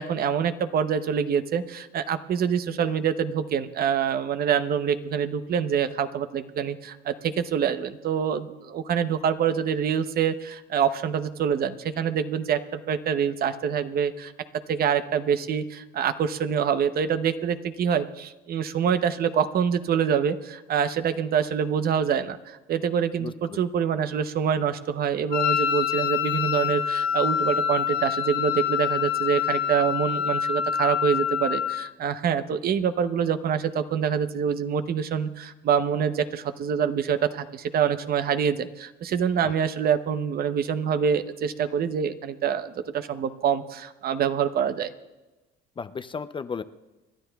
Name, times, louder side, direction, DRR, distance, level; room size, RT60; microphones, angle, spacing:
voice 1, 0.0-14.3 14.7-44.9, right 7 dB, 50° right, 11 dB, 0.8 m, -26 dB
voice 2, 23.2-23.6 39.4-39.5 45.8-46.6, left 5 dB, 25° left, 12 dB, 0.5 m, -34 dB
Wind instrument woodwind instrument, 25.3-31.9, left 9 dB, 50° left, 0.8 m, -26 dB
29.5 x 11.5 x 2.3 m, 1.1 s
supercardioid pair, 90°, 20 cm